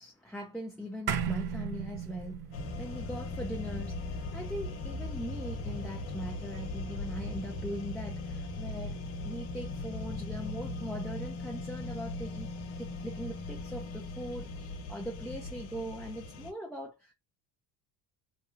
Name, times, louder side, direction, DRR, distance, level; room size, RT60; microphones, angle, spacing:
voice 1, 0.0-17.1, equal, ahead, 0.4 m, -41 dB
sound 1, 1.1-5.7, right 8 dB, 55° right, 0.6 m, -37 dB
sound 2, 2.5-16.5, left 2 dB, 70° left, 1.0 m, -39 dB
3.0 x 2.2 x 2.6 m
cardioid pair, 115°, 47 cm